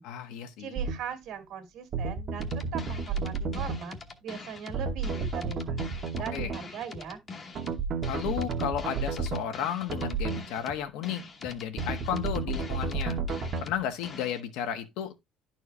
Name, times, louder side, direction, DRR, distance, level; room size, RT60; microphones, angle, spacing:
voice 1, 0.0-0.7 6.3-6.5 8.1-13.2 13.6-15.1, left 9 dB, 80° left, 1.3 m, -33 dB
voice 2, 0.6-5.8 6.1-7.2, right 8 dB, 60° right, 2.1 m, -40 dB
sound 1, 0.8-1.0 1.9-3.8 4.7-6.6 7.5-9.4 9.9-10.4 11.8-13.7, right 4 dB, 40° right, 1.3 m, -32 dB
sound 2, 2.4-14.4, left 4 dB, 25° left, 1.0 m, -44 dB
11.0 x 4.5 x 3.3 m
cardioid pair, 160°, 0 cm